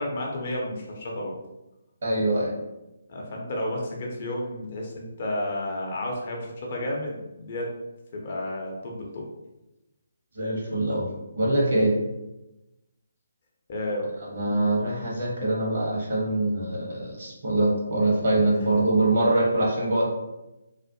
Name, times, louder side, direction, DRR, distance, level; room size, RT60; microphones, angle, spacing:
voice 1, 0.0-1.4 3.1-7.7 8.1-9.2 13.7-14.1, left 1 dB, 40° left, -1 dB, 0.5 m, -31 dB
voice 2, 2.0-2.5 10.3-11.1 11.3-11.9 14.2-20.1, right 2 dB, 50° right, -3 dB, 0.8 m, -24 dB
2.4 x 2.1 x 2.6 m, 0.97 s
figure-of-eight pair, 140°, 0 cm